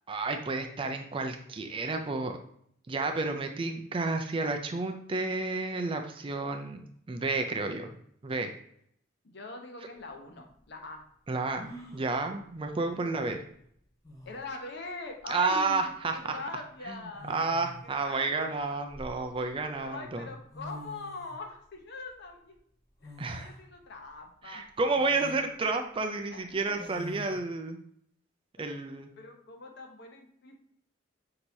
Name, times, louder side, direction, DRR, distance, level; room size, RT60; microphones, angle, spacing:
voice 1, 0.1-2.3 2.9-7.9 8.2-8.6 11.3-13.4 15.3-16.4 16.9-20.3 23.2-23.5 24.4-27.8 28.6-29.1, right 3 dB, 30° right, 6 dB, 0.4 m, -31 dB
voice 2, 9.2-11.1 12.9-13.3 14.3-17.6 18.0-18.9 19.4-22.6 23.0-24.7 26.3-26.8 28.6-30.5, left 3 dB, 60° left, 3 dB, 0.8 m, -43 dB
sound 1, 10.0-10.1 11.6-12.1 13.6-13.7 14.0-14.5 15.9-16.1 17.2-17.9 18.6-19.6 20.3-20.4 20.5-21.4 23.0-23.6 24.1-24.2 24.9-25.4 26.8-27.4, equal, 20° left, 0.8 m, -46 dB
6.1 x 2.8 x 2.7 m, 0.66 s
head